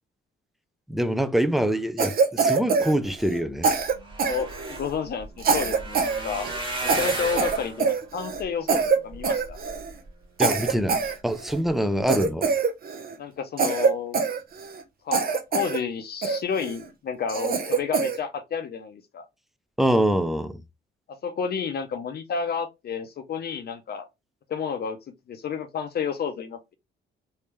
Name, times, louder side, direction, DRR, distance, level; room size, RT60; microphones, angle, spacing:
voice 1, 0.9-3.7 10.4-12.5 19.8-20.6, right 1 dB, ahead, 0.5 m, -24 dB
Cough, 2.0-3.4 3.6-4.9 5.4-6.2 6.4-6.6 6.9-8.4 8.7-9.0 9.2-9.9 10.4-11.6 12.1-13.1 13.6-14.8 15.1-15.8 16.2-16.8 17.3-18.2, right 5 dB, 50° right, 0.7 m, -24 dB
sound 1, 3.8-10.1 10.6-11.1 11.5-11.7 12.0-12.1, right 2 dB, 25° right, 1.7 m, -35 dB
voice 2, 4.2-6.5 6.8-9.6 13.2-14.2 15.0-19.2 21.1-24.1 24.5-25.0 25.3-26.7, left 6 dB, 55° left, 0.7 m, -31 dB
3.4 x 2.7 x 3.1 m
cardioid pair, 90°, 20 cm